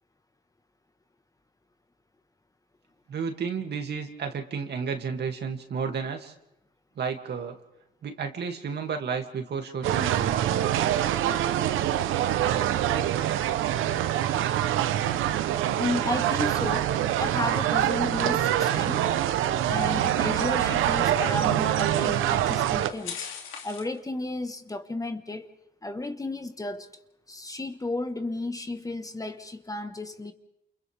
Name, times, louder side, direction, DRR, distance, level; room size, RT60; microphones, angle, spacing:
voice 1, 3.1-6.3 7.0-7.6 8.0-10.4, right 6 dB, 55° right, 4 dB, 2.5 m, -32 dB
sound 1, 9.8-22.9, right 11 dB, 85° right, 0.9 m, -25 dB
sound 2, 13.5-24.0, left 7 dB, 85° left, 2.6 m, -48 dB
voice 2, 15.7-16.9 17.2-19.0 19.7-23.3 23.6-25.5 25.8-26.9 27.3-30.3, left 2 dB, 15° left, 8 dB, 1.4 m, -33 dB
29.0 x 28.5 x 3.5 m, 0.83 s
cardioid pair, 90°, 20 cm